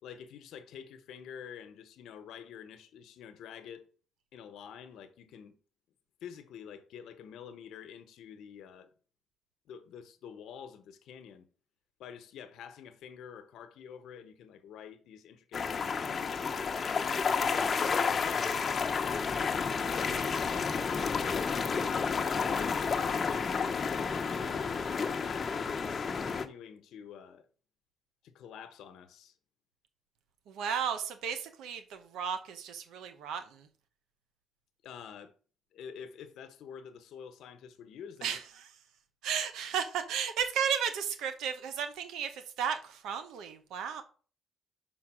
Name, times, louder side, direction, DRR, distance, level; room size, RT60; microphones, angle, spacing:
voice 1, 0.0-3.9 4.3-5.6 6.2-8.9 9.7-11.5 12.0-16.4 17.3-17.7 18.1-18.9 19.7-27.4 28.2-29.3 34.8-35.3 35.7-38.4, left 8 dB, 80° left, 1.0 m, -48 dB
sound 1, 15.5-26.5, left 5 dB, 40° left, 0.8 m, -31 dB
voice 2, 30.5-33.7 38.2-38.4 39.2-44.0, right 7 dB, 90° right, 0.8 m, -34 dB
6.0 x 4.0 x 6.1 m
cardioid pair, 90°, 0 cm